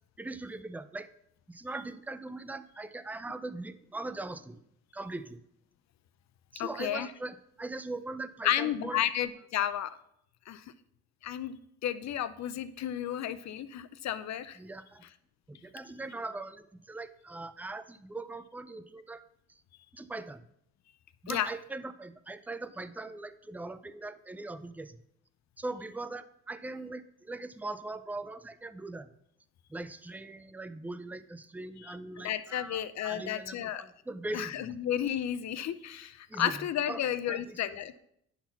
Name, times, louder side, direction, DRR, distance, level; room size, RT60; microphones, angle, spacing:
voice 1, 0.2-1.1 1.5-4.6 4.9-5.4 6.5-9.0 14.6-15.0 15.5-19.2 19.5-19.6 19.9-20.5 21.2-25.0 25.6-29.1 29.7-34.7 36.3-37.0 37.3-37.8, right 2 dB, 5° right, 11 dB, 0.5 m, -41 dB
voice 2, 6.6-7.1 8.4-10.0 10.5-10.6 11.2-14.6 21.3-21.5 31.8-31.9 32.2-33.8 34.3-38.0, left 11 dB, 65° left, 14 dB, 0.7 m, -32 dB
10.0 x 4.1 x 5.8 m, 0.72 s
cardioid pair, 90°, 30 cm